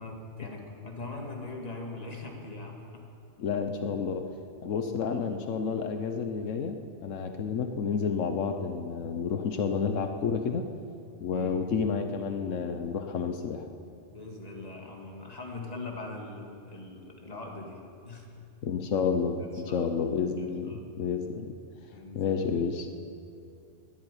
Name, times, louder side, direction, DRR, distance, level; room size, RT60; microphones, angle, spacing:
voice 1, 0.0-3.1 5.1-5.3 11.3-11.6 14.1-17.8 18.0-18.3 19.4-19.8 20.4-20.8 21.9-22.4, left 2 dB, 30° left, 0 dB, 2.2 m, -41 dB
voice 2, 3.4-4.2 4.6-6.8 7.0-10.7 11.2-13.7 18.6-21.5 22.1-22.9, left 6 dB, 85° left, 6 dB, 1.2 m, -30 dB
13.0 x 10.5 x 9.9 m, 2.5 s
omnidirectional pair, 1.3 m